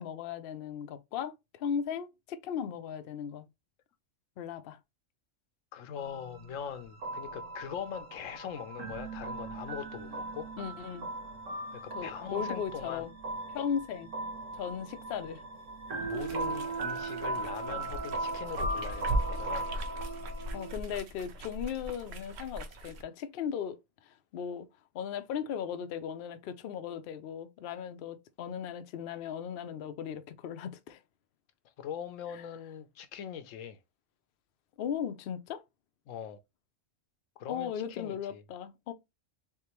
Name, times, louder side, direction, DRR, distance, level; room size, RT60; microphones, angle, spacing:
voice 1, 0.0-3.4 4.4-4.8 10.6-11.1 11.9-13.1 13.5-14.1 14.5-15.4 20.5-24.7 24.9-31.0 32.3-32.4 34.8-35.6 37.5-38.9, left 8 dB, 60° left, 0.6 m, -37 dB
voice 2, 5.7-10.5 11.7-13.1 16.0-19.7 31.8-33.8 36.1-36.4 37.4-38.4, left 8 dB, 85° left, 1.0 m, -41 dB
sound 1, 6.0-20.7, right 2 dB, 85° right, 1.8 m, -38 dB
sound 2, 16.1-23.0, right 1 dB, 60° right, 0.9 m, -38 dB
3.6 x 3.5 x 2.9 m
omnidirectional pair, 1.3 m